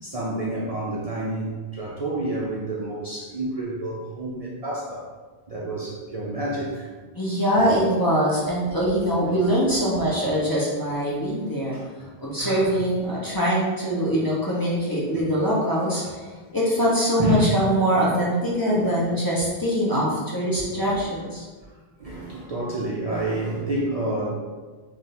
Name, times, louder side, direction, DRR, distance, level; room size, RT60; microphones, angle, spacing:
voice 1, 0.0-5.0 5.5-6.9 11.7-11.8 12.4-12.7 17.2-17.6 18.7-19.0 20.8-21.0 22.0-24.3, right 1 dB, 45° right, -5 dB, 0.6 m, -29 dB
voice 2, 7.1-11.7 12.2-16.2 16.5-21.4, equal, 25° left, -6 dB, 0.8 m, -23 dB
3.5 x 2.6 x 4.1 m, 1.3 s
omnidirectional pair, 1.0 m